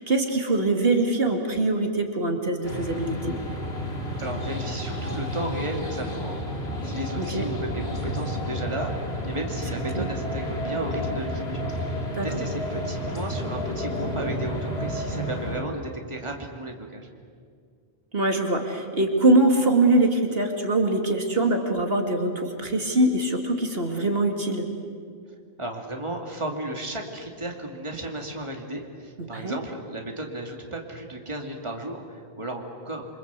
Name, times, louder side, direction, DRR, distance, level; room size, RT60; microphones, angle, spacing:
voice 1, 0.0-3.4 7.1-7.4 10.0-10.1 12.2-12.3 18.1-24.7 29.2-29.6, right 2 dB, 70° right, 3 dB, 2.7 m, -23 dB
sound 1, 2.6-15.6, equal, 80° left, 3.3 m, -31 dB
voice 2, 4.2-6.4 6.8-11.7 12.2-17.1 25.6-33.1, right 1 dB, 30° right, 2 dB, 2.5 m, -34 dB
28.0 x 25.0 x 8.2 m, 2.1 s
omnidirectional pair, 1.0 m